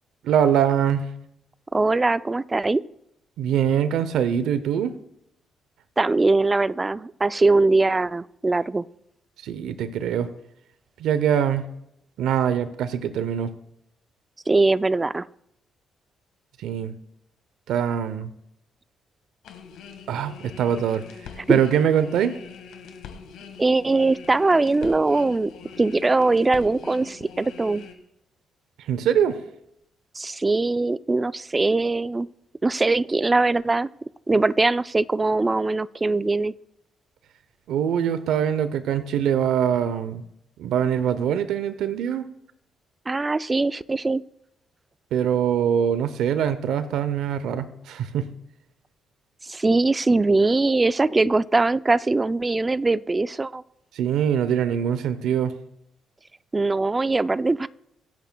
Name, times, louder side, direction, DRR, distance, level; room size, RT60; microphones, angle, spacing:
voice 1, 0.2-1.1 3.4-4.9 9.4-10.3 11.0-11.7 12.2-13.5 16.6-16.9 17.7-18.3 20.1-21.0 21.5-22.4 28.9-29.4 37.7-40.2 40.6-42.3 45.1-48.3 53.9-55.5, right 9 dB, 80° right, 12 dB, 0.6 m, -23 dB
voice 2, 1.7-2.8 6.0-8.8 14.5-15.3 21.5-21.6 23.6-25.5 25.8-27.9 30.2-32.3 32.6-33.9 34.3-36.5 43.1-44.2 49.4-53.6 56.5-57.7, right 3 dB, 20° right, 16 dB, 0.3 m, -21 dB
sound 1, 19.4-27.9, left 6 dB, 85° left, 1.5 m, -43 dB
24.0 x 8.2 x 2.2 m, 0.78 s
cardioid pair, 90°, 0 cm